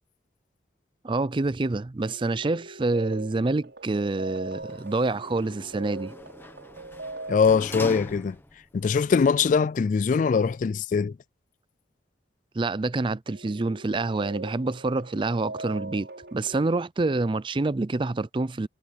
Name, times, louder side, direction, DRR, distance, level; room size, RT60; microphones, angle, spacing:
voice 1, 1.0-6.1 12.6-18.7, right 2 dB, 30° right, 0.4 m, -27 dB
sound 1, 2.0-8.1 13.3-16.8, right 2 dB, 85° right, 5.5 m, -41 dB
Sliding door, 4.6-8.7 9.2-9.3, left 1 dB, 15° left, 1.3 m, -41 dB
voice 2, 7.3-8.4 8.7-11.2, left 5 dB, 45° left, 0.3 m, -22 dB
head